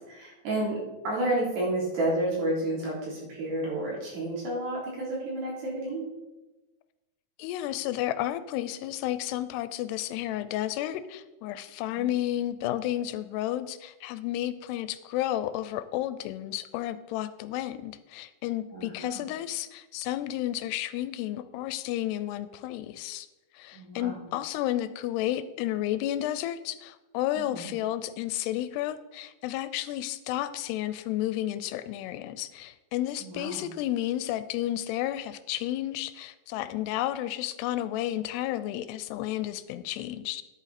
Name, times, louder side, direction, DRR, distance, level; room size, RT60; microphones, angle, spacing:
voice 1, 0.1-6.0 12.0-12.1 18.7-19.2 23.7-24.2 27.4-27.7 33.2-33.6, right 1 dB, 75° right, -5 dB, 5.6 m, -31 dB
voice 2, 7.4-23.3 23.5-40.4, left 13 dB, 85° left, 13 dB, 2.6 m, -32 dB
10.5 x 9.0 x 4.2 m, 1.1 s
omnidirectional pair, 4.8 m